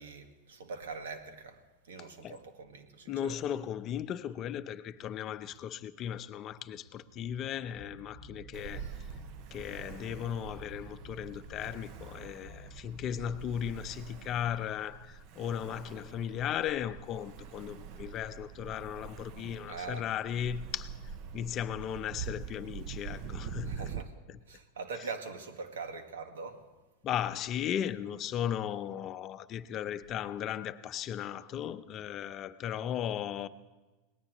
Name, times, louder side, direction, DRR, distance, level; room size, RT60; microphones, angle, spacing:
voice 1, 0.0-1.6 1.8-3.3 19.7-20.0 23.7-24.2 24.5-26.6, right 4 dB, 90° right, 1.6 m, -42 dB
voice 2, 3.1-9.1 9.5-21.0 21.3-23.9 24.3-24.4 27.0-33.5, left 10 dB, 40° left, 0.6 m, -36 dB
sound 1, 7.8-14.1, equal, 35° right, 4.9 m, -51 dB
Ocean, 8.5-24.0, right 7 dB, 55° right, 0.7 m, -45 dB
22.0 x 19.0 x 3.1 m
supercardioid pair, 120°, 0 cm